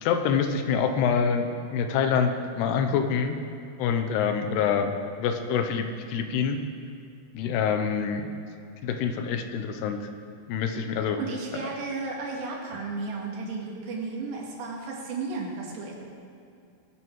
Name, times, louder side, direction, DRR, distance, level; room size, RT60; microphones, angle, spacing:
voice 1, 0.0-3.4 3.8-6.6 7.3-8.3 8.8-10.1 10.5-11.2, left 6 dB, 80° left, 6 dB, 2.9 m, -26 dB
voice 2, 11.2-16.0, right 3 dB, 85° right, -2 dB, 4.3 m, -34 dB
21.5 x 9.3 x 4.7 m, 2.5 s
omnidirectional pair, 4.8 m